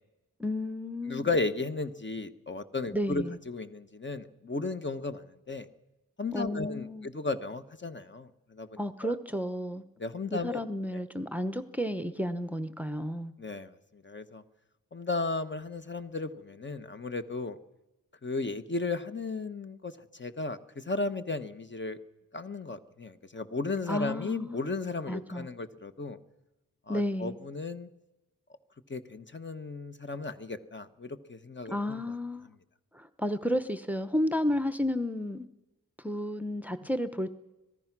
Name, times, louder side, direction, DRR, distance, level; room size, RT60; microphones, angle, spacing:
voice 1, 0.4-1.3 2.9-3.4 6.3-7.1 8.8-9.8 10.3-13.3 23.9-24.6 25.1-25.5 26.9-27.4 31.7-32.5 32.9-35.5 36.0-37.3, left 1 dB, 5° right, 0.9 m, -32 dB
voice 2, 1.1-5.7 6.2-9.1 10.0-10.6 10.9-11.0 13.4-13.7 14.0-14.4 14.9-17.6 18.2-22.0 22.3-26.2 26.9-27.9 28.9-32.0, left 3 dB, 30° left, 1.3 m, -35 dB
26.0 x 18.0 x 6.1 m
wide cardioid pair, 100°, 35 cm